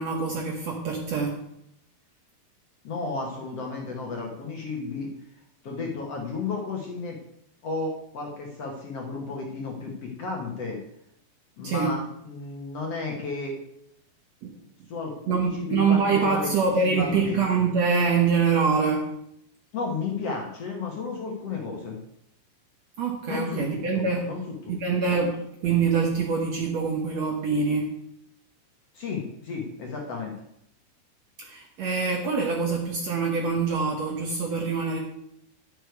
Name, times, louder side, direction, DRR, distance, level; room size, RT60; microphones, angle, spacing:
voice 1, 0.0-1.4 11.6-11.9 14.4-14.5 15.3-19.1 23.0-24.3 24.7-27.9 31.4-35.0, right 5 dB, 60° right, 1 dB, 1.9 m, -25 dB
voice 2, 2.8-5.1 5.6-7.2 7.6-10.8 11.6-13.6 14.9-16.5 16.8-17.7 19.7-22.0 23.3-25.0 28.9-30.3, left 4 dB, 55° left, 0 dB, 2.1 m, -33 dB
11.0 x 10.0 x 4.7 m, 0.75 s
omnidirectional pair, 4.2 m